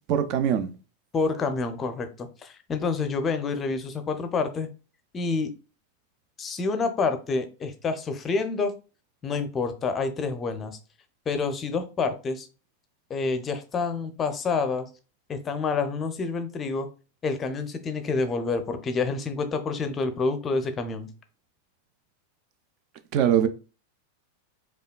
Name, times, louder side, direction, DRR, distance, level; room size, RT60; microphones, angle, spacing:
voice 1, 0.1-0.7 23.1-23.5, right 9 dB, 40° right, 0.4 m, -22 dB
voice 2, 1.1-4.7 5.1-5.5 6.4-8.7 9.2-10.8 11.3-12.5 13.1-14.9 15.3-16.9 17.2-21.1, left 4 dB, 25° left, 0.5 m, -28 dB
4.9 x 2.2 x 2.2 m
figure-of-eight pair, 90°, 0 cm